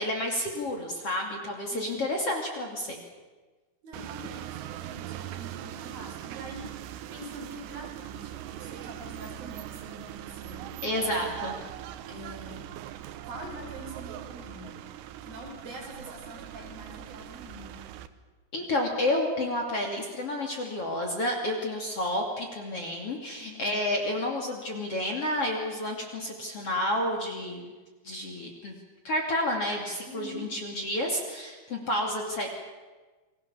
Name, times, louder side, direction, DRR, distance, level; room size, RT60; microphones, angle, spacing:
voice 1, 0.0-3.0 10.8-11.6 18.5-27.7 28.0-28.8 29.0-32.5, left 1 dB, 40° left, 1 dB, 3.3 m, -30 dB
voice 2, 1.7-2.1 3.8-6.7 7.1-10.7 12.1-12.6 13.2-14.8 15.2-17.9 23.4-23.8 30.1-30.4, right 1 dB, 55° right, 0 dB, 7.5 m, -44 dB
sound 1, 3.9-18.1, right 12 dB, 90° right, 3.2 m, -41 dB
29.0 x 21.5 x 7.1 m, 1.3 s
omnidirectional pair, 4.9 m